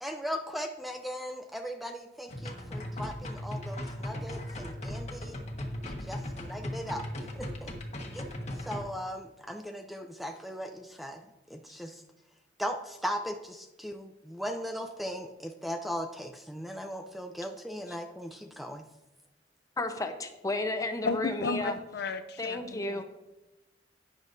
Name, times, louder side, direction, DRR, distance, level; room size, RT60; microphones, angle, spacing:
voice 1, 0.0-5.4 5.8-7.7 8.1-8.3 8.5-11.2 11.5-12.0 12.6-18.9, equal, ahead, 5 dB, 0.4 m, -38 dB
sound 1, 2.3-8.8, left 1 dB, 40° left, 1.3 m, -38 dB
voice 2, 19.8-21.7 22.4-23.0, left 2 dB, 20° left, 6 dB, 0.8 m, -32 dB
voice 3, 21.0-23.0, left 3 dB, 65° left, 10 dB, 0.5 m, -33 dB
11.5 x 9.0 x 2.6 m, 0.99 s
head